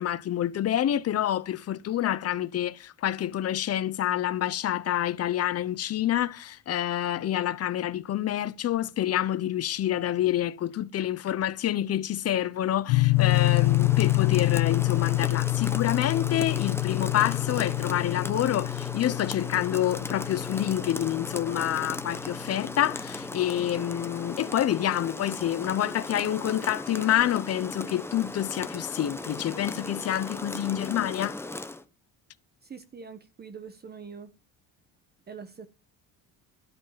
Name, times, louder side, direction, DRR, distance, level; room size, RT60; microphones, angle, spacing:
voice 1, 0.0-31.4, left 11 dB, 40° left, 0.8 m, -27 dB
sound 1, 12.9-23.0, left 21 dB, 90° left, 0.5 m, -27 dB
Rain, 13.1-31.8, left 2 dB, 5° left, 0.9 m, -37 dB
voice 2, 32.6-34.3 35.3-35.7, right 6 dB, 25° right, 1.0 m, -43 dB
12.0 x 7.9 x 5.7 m
cardioid pair, 135°, 37 cm